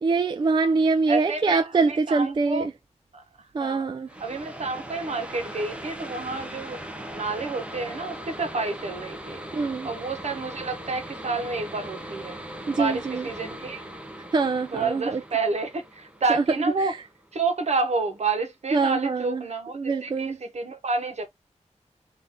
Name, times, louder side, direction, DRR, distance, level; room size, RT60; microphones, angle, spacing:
voice 1, 0.0-2.7 3.5-4.1 9.5-9.9 12.7-13.3 14.3-15.2 16.3-16.4 16.8-17.0 18.7-19.4 19.7-20.4, right 4 dB, 40° right, 0.3 m, -24 dB
voice 2, 1.1-2.7 3.1-3.9 4.2-6.8 7.1-9.4 9.8-12.4 12.7-13.8 14.7-16.9 17.3-21.2, right 3 dB, 65° right, 1.1 m, -29 dB
sound 1, 4.1-17.4, right 1 dB, 10° right, 0.8 m, -39 dB
3.9 x 2.6 x 3.5 m
wide cardioid pair, 110°, 12 cm